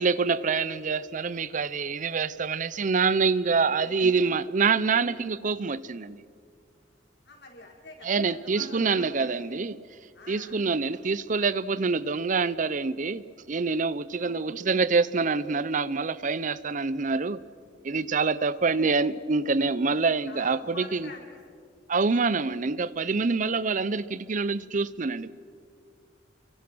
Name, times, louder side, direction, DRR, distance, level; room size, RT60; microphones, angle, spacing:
voice 1, 0.0-6.2 8.0-9.8 10.3-17.4 17.8-21.1 21.9-25.3, right 4 dB, 45° right, 0.6 m, -26 dB
voice 2, 3.8-4.1 4.9-5.1 7.3-9.5 10.1-10.8 14.2-14.4 18.5-18.7 20.0-21.4, left 2 dB, 65° left, 5.3 m, -47 dB
30.0 x 24.5 x 6.2 m
head